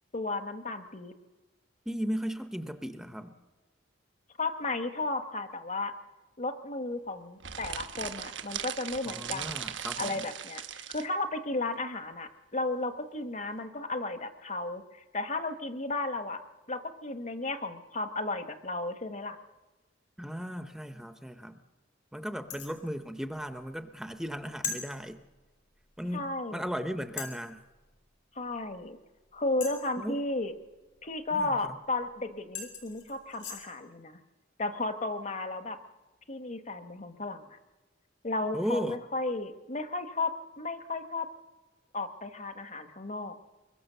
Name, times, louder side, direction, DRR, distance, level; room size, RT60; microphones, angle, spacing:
voice 1, 0.1-1.1 4.4-5.9 6.4-9.6 10.0-16.4 16.7-19.4 26.1-26.6 28.3-29.0 29.3-30.5 31.0-34.2 34.6-35.8 36.3-37.6 38.2-41.3 41.9-43.5, left 2 dB, 40° left, 8 dB, 1.3 m, -34 dB
voice 2, 1.9-3.4 9.1-10.2 20.2-21.6 22.1-25.2 26.0-27.6 30.0-30.2 31.3-31.8 38.5-39.0, equal, 5° right, 8 dB, 0.8 m, -36 dB
sound 1, 7.4-11.1, right 9 dB, 80° right, 1.3 m, -38 dB
sound 2, 22.5-22.8 24.6-24.8 26.2-26.3 27.2-27.5 29.6-30.0 32.0-32.1 32.5-33.6, left 6 dB, 80° left, 4.3 m, -38 dB
24.5 x 22.0 x 6.8 m, 1.2 s
head